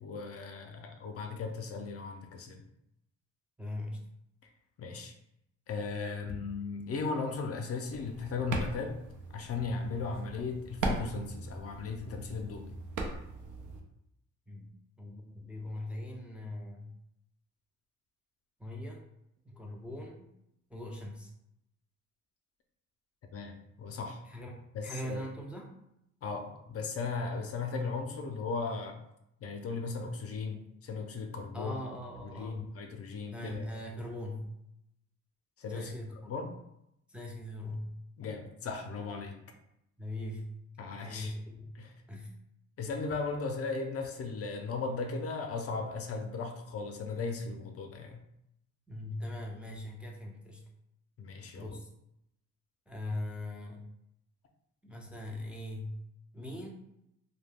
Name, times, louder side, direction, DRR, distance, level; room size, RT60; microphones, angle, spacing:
voice 1, 0.0-2.6 4.8-5.1 5.7-8.9 9.3-12.6 23.3-24.2 24.7-25.2 26.2-29.0 29.4-31.8 32.2-33.6 35.6-35.9 36.3-36.5 38.2-39.4 40.8-41.3 41.7-41.9 42.8-48.2 51.2-51.8, left 4 dB, 50° left, 4 dB, 0.5 m, -37 dB
voice 2, 3.6-4.1 14.5-16.9 18.6-19.0 19.5-20.3 20.7-21.3 24.3-24.5 24.8-25.7 31.5-32.7 33.3-34.5 35.7-36.1 37.1-37.9 40.0-40.5 41.0-41.7 42.1-42.3 48.9-50.6 51.5-51.9 52.9-53.9 54.8-56.0 56.3-56.7, left 1 dB, 5° right, 0 dB, 0.4 m, -40 dB
sound 1, 7.9-13.8, right 2 dB, 75° right, 0.6 m, -39 dB
2.3 x 2.1 x 3.4 m, 0.80 s
cardioid pair, 90°, 30 cm